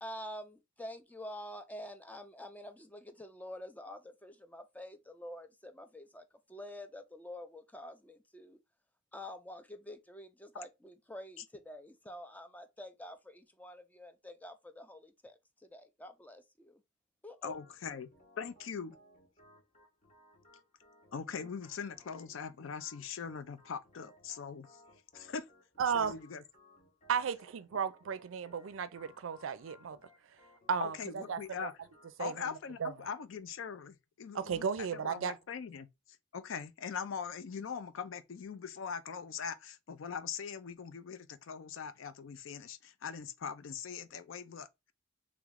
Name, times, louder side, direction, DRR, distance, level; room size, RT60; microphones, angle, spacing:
voice 1, 0.0-8.6 9.1-15.4 15.7-16.8 17.2-17.6, left 1 dB, 10° left, 0.4 m, -47 dB
voice 2, 17.4-18.1 18.4-18.9 21.1-24.7 25.1-25.5 25.9-26.4 30.8-31.7 32.2-34.6 34.9-35.9 36.3-44.7, left 6 dB, 70° left, 0.4 m, -41 dB
Organ, 17.5-32.5, left 1 dB, 35° left, 0.9 m, -63 dB
voice 3, 25.8-26.2 27.1-30.0 30.7-31.7 32.2-32.9 34.3-35.4, right 6 dB, 75° right, 0.4 m, -35 dB
3.1 x 3.0 x 3.5 m
head